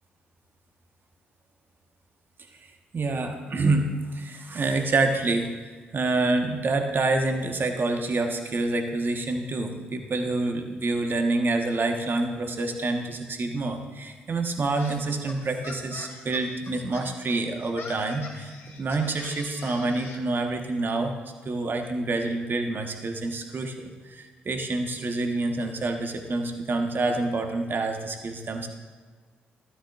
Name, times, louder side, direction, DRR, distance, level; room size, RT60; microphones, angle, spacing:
voice 1, 2.9-5.5 5.9-21.1 21.4-28.7, right 2 dB, 45° right, 4 dB, 1.4 m, -27 dB
sound 1, 14.7-20.2, left 4 dB, 55° left, 1.6 m, -43 dB
12.5 x 12.5 x 2.6 m, 1.5 s
hypercardioid pair, 40°, 5 cm